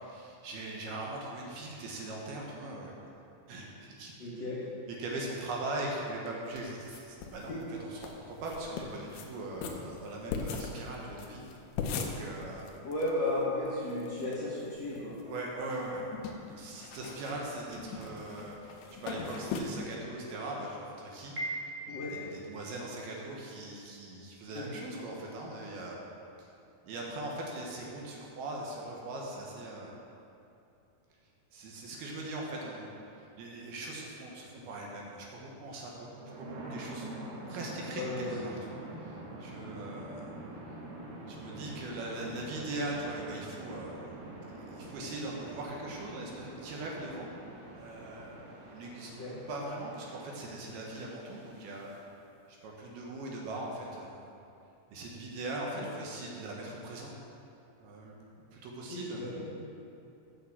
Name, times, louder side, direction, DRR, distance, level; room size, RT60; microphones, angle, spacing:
voice 1, 0.0-3.1 3.5-4.3 5.0-7.5 7.8-11.4 12.0-12.7 15.3-16.1 16.4-21.3 21.9-26.0 26.4-26.5 26.8-29.9 31.5-36.1 36.4-37.1 37.5-40.3 41.3-44.1 44.5-47.3 47.8-49.1 49.5-52.1 52.5-54.3 54.9-57.1 57.8-59.3, right 2 dB, 70° right, -2 dB, 2.8 m, -40 dB
voice 2, 4.2-4.6 12.8-15.1 21.9-22.4 24.5-24.7 37.9-38.5 49.2-49.4 55.9-56.0 58.9-59.5, left 2 dB, 60° left, -9 dB, 1.8 m, -34 dB
sound 1, 6.6-7.5 7.7-7.8 8.0-8.1 8.4-9.3 9.6-13.1 13.4-13.5 13.6-14.3 14.8-15.4 15.7-19.6, left 6 dB, 75° left, 2.6 m, -39 dB
Piano, 21.4-22.4, right 1 dB, 35° right, 1.1 m, -38 dB
sound 2, 36.0-51.9, right 1 dB, 90° right, 4.2 m, -46 dB
8.8 x 6.6 x 7.4 m, 2.7 s
omnidirectional pair, 5.0 m